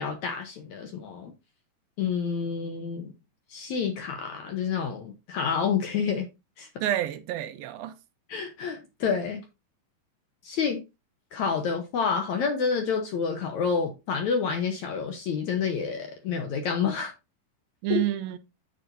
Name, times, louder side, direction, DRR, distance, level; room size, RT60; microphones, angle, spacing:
voice 1, 0.0-1.3 2.0-3.1 3.5-6.3 6.6-6.7 8.3-9.4 10.4-10.8 11.3-17.1 17.9-18.0, left 6 dB, 65° left, 2.0 m, -28 dB
voice 2, 6.8-7.9 17.8-18.4, right 13 dB, 85° right, 2.7 m, -28 dB
9.0 x 7.5 x 2.7 m
omnidirectional pair, 4.1 m